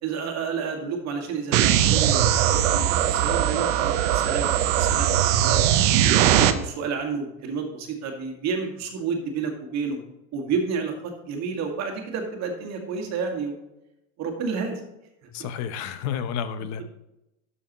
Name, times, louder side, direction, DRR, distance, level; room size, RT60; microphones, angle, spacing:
voice 1, 0.0-5.7 6.2-10.0 10.3-13.6 14.2-14.8, right 5 dB, 45° right, 3 dB, 1.9 m, -30 dB
sound 1, 1.5-6.5, right 11 dB, 85° right, 0.8 m, -20 dB
voice 2, 15.3-16.8, left 8 dB, 45° left, 12 dB, 0.8 m, -30 dB
10.5 x 6.9 x 3.0 m, 0.90 s
supercardioid pair, 135°, 37 cm